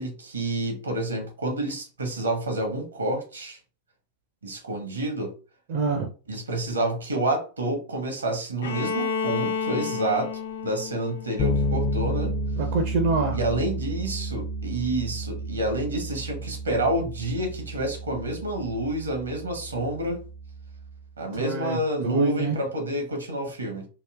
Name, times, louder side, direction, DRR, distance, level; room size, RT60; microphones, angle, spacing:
voice 1, 0.0-3.6 4.4-5.3 6.3-10.3 10.6-12.4 13.3-20.2 21.2-23.9, right 1 dB, 75° right, 4 dB, 0.9 m, -29 dB
voice 2, 5.7-6.1 12.6-13.4 21.3-21.8 22.0-22.6, right 3 dB, 50° right, 3 dB, 0.5 m, -25 dB
Bowed string instrument, 8.6-12.5, left 5 dB, 70° left, 0.7 m, -31 dB
Bass guitar, 11.4-21.0, equal, 30° left, 0.5 m, -31 dB
3.5 x 2.6 x 2.3 m, 0.36 s
figure-of-eight pair, 90°, 0 cm